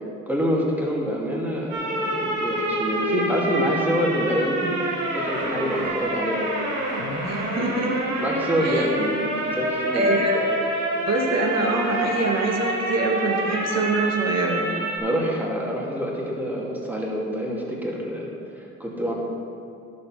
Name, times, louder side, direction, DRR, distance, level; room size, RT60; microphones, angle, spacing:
voice 1, 0.3-4.7 5.1-6.7 8.2-10.1 15.0-18.3 18.5-19.1, equal, 5° right, -4 dB, 2.7 m, -26 dB
sound 1, 1.7-15.0, right 1 dB, 80° right, 2.5 m, -27 dB
voice 2, 7.2-7.9 8.6-8.9 9.9-10.4 10.9-14.6, right 2 dB, 60° right, 0 dB, 2.1 m, -24 dB
11.5 x 7.9 x 5.9 m, 2.5 s
cardioid pair, 90°, 30 cm